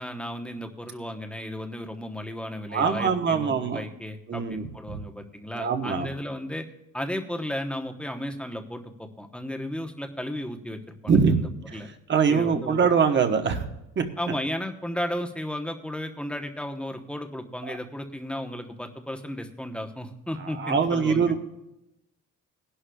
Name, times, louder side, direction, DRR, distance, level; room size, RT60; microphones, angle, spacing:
voice 1, 0.0-6.7 6.9-11.9 12.3-12.8 14.2-21.2, left 1 dB, 5° left, 5 dB, 1.0 m, -34 dB
voice 2, 2.7-3.8 4.3-5.0 5.5-6.1 11.1-11.4 11.7-11.8 12.1-13.6 14.0-14.1 20.5-21.4, right 6 dB, 35° right, 6 dB, 1.1 m, -23 dB
20.5 x 11.5 x 2.3 m, 0.89 s
cardioid pair, 130°, 31 cm